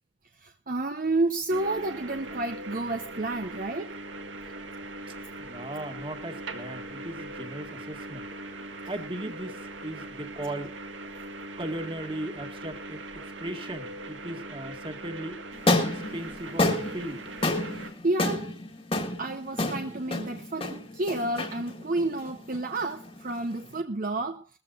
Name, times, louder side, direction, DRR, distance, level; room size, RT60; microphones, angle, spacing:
voice 1, 0.4-4.0 18.0-18.5 19.2-24.6, right 2 dB, 45° right, 0.8 m, -30 dB
sound 1, 1.5-17.9, right 2 dB, 85° right, 1.9 m, -40 dB
voice 2, 5.4-8.3 8.9-10.7 11.6-13.0 13.4-15.4 15.8-17.2, right 1 dB, 30° right, 2.0 m, -37 dB
sound 2, 15.5-23.8, left 2 dB, 30° left, 1.7 m, -30 dB
20.5 x 14.5 x 2.5 m
head